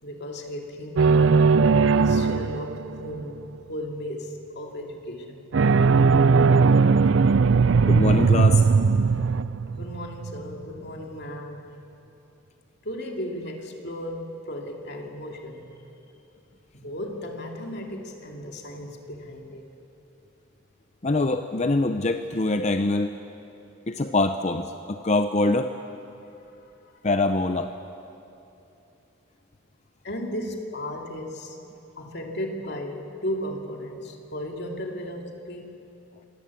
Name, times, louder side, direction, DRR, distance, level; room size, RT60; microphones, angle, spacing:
voice 1, 0.0-1.4 1.9-6.2 9.7-11.7 12.8-15.8 16.7-19.7 26.2-26.9 30.0-31.6 32.0-35.8, equal, 55° left, 2 dB, 2.6 m, -35 dB
sound 1, 1.0-3.2 5.5-10.5, right 4 dB, 65° right, 0.5 m, -19 dB
voice 2, 7.8-8.7 21.0-23.2 23.9-25.7 27.0-27.7, left 2 dB, 35° left, 8 dB, 0.6 m, -24 dB
26.5 x 19.5 x 8.4 m, 2.8 s
head